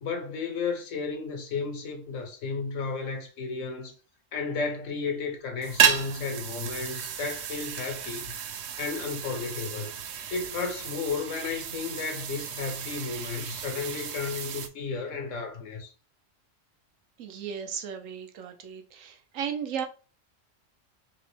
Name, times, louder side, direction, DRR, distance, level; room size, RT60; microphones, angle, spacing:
voice 1, 0.0-3.9 4.3-8.3 8.8-9.9 10.3-15.9, left 4 dB, 80° left, 1.3 m, -33 dB
sound 1, 5.6-14.7, right 8 dB, 65° right, 0.8 m, -32 dB
voice 2, 17.2-19.8, right 8 dB, 85° right, 1.1 m, -35 dB
3.7 x 3.0 x 3.2 m
omnidirectional pair, 1.3 m